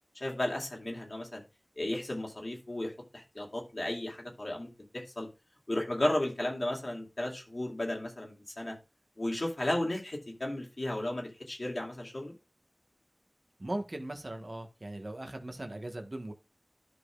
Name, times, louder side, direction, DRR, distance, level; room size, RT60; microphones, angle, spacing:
voice 1, 0.2-1.4 1.8-5.3 5.7-8.7 9.2-12.3, left 1 dB, 65° left, 0 dB, 2.4 m, -34 dB
voice 2, 13.6-16.3, right 1 dB, 55° right, 5 dB, 1.3 m, -39 dB
13.5 x 5.2 x 2.4 m, 0.28 s
wide cardioid pair, 45°, 0 cm